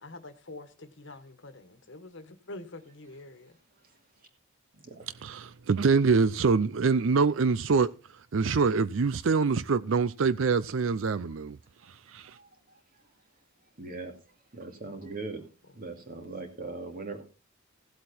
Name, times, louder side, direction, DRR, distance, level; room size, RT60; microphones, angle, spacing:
voice 1, 0.0-3.5 15.0-15.4, left 2 dB, 60° left, 1.4 m, -46 dB
voice 2, 5.2-7.9 8.3-11.6 12.1-12.3, right 4 dB, 70° right, 0.5 m, -25 dB
voice 3, 13.8-14.1 14.5-15.4 15.7-17.2, right 3 dB, 45° right, 2.5 m, -39 dB
16.0 x 8.0 x 4.3 m
head